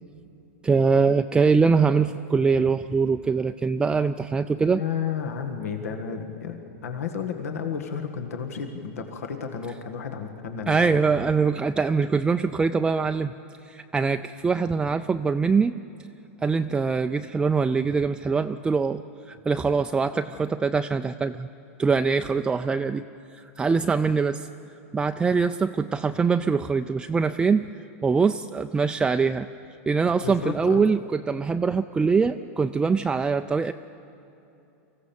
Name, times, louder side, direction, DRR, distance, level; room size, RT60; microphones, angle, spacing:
voice 1, 0.6-4.8 10.7-13.3 13.7-15.8 16.4-19.0 19.3-21.5 21.8-23.0 23.3-24.5 24.9-27.7 28.0-29.5 29.9-33.7, right 5 dB, 10° right, 7 dB, 0.4 m, -23 dB
voice 2, 4.6-11.0 30.2-30.8, left 7 dB, 90° left, 5 dB, 1.7 m, -32 dB
24.0 x 15.5 x 7.1 m, 2.9 s
supercardioid pair, 130°, 8 cm